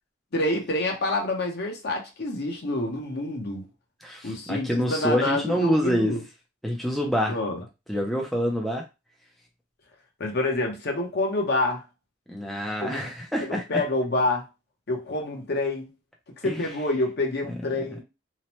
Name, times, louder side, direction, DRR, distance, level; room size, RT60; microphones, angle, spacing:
voice 1, 0.3-3.7 4.2-6.2 7.3-7.6 10.2-11.8 12.8-13.1 13.4-14.5 14.9-15.9 16.4-18.0, left 2 dB, 55° left, 0.7 m, -27 dB
voice 2, 4.0-6.1 6.6-7.4 7.9-8.8 12.3-13.8 16.4-16.6, equal, ahead, 0.4 m, -26 dB
2.9 x 2.0 x 2.9 m
head